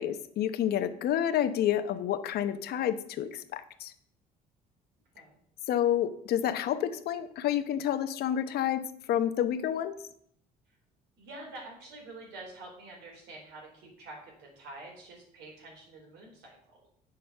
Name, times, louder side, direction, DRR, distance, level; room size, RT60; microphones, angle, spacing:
voice 1, 0.0-3.9 5.7-8.8 9.1-10.0, left 10 dB, 70° left, 10 dB, 0.9 m, -29 dB
voice 2, 11.2-16.9, right 2 dB, 85° right, 0 dB, 4.1 m, -47 dB
8.2 x 6.7 x 6.7 m, 0.68 s
cardioid pair, 110°, 17 cm